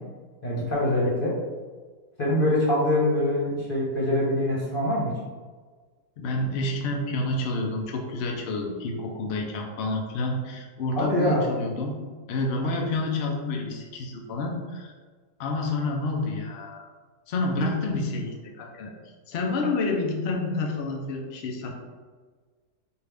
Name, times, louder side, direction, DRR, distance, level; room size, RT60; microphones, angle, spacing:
voice 1, 0.4-1.3 2.2-5.1 11.0-11.4, left 1 dB, 40° left, -5 dB, 1.0 m, -24 dB
voice 2, 6.2-12.0 12.3-14.9 15.4-16.9 17.3-18.9 19.3-21.7, left 2 dB, 85° left, 1 dB, 0.5 m, -29 dB
4.5 x 2.6 x 3.3 m, 1.5 s
omnidirectional pair, 1.8 m